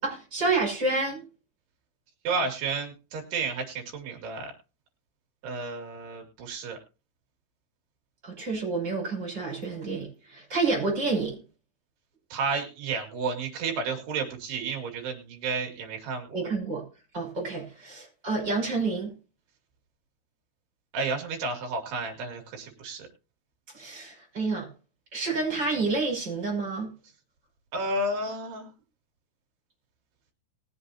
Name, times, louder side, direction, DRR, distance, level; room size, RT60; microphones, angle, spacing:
voice 1, 0.0-1.2 8.2-11.4 16.3-16.8 17.1-19.1 23.7-24.7 25.1-26.9, right 3 dB, 25° right, 5.9 m, -29 dB
voice 2, 2.2-4.5 5.4-6.8 12.3-16.4 20.9-23.1 27.7-28.7, right 3 dB, 85° right, 4.4 m, -31 dB
20.5 x 7.8 x 2.7 m
omnidirectional pair, 4.6 m